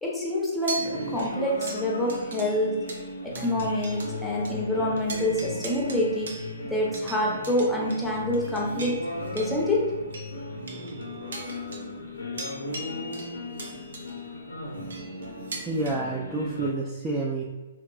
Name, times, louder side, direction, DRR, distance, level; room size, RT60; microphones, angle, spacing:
voice 1, 0.0-2.7 3.4-6.3 6.7-9.0 9.3-9.9, left 1 dB, 5° left, -5 dB, 0.7 m, -26 dB
sound 1, 0.6-4.2 4.4-4.6 5.0-15.9, right 2 dB, 65° right, 0.5 m, -41 dB
sound 2, 0.7-16.7, left 1 dB, 85° left, 0.5 m, -37 dB
voice 2, 15.7-17.4, right 2 dB, 15° right, -4 dB, 0.3 m, -29 dB
3.5 x 2.3 x 2.4 m, 1.2 s
figure-of-eight pair, 120°, 0 cm